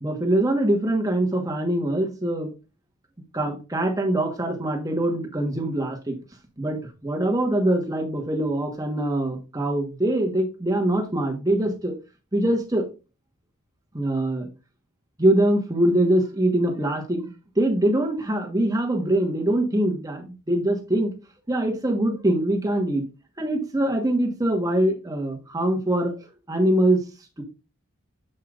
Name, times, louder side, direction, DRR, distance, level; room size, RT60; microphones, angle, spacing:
voice 1, 0.0-2.5 3.3-6.2 6.6-12.0 12.3-12.9 13.9-14.5 15.2-17.3 17.6-21.1 21.5-23.0 23.4-26.2 26.5-27.0 27.4-27.5, right 1 dB, 15° right, 2 dB, 1.3 m, -23 dB
7.6 x 5.5 x 2.5 m, 0.30 s
head